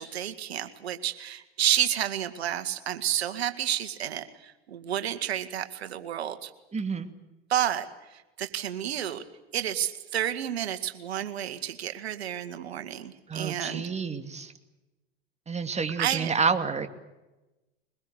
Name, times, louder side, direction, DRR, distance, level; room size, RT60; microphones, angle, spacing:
voice 1, 0.0-6.5 7.5-9.2 9.5-13.9 15.9-16.3, right 11 dB, 85° right, 10 dB, 2.2 m, -30 dB
voice 2, 6.7-7.1 13.3-14.5 15.5-16.9, right 5 dB, 20° right, 8 dB, 2.6 m, -29 dB
23.5 x 21.5 x 8.3 m, 1.0 s
hypercardioid pair, 80°, 31 cm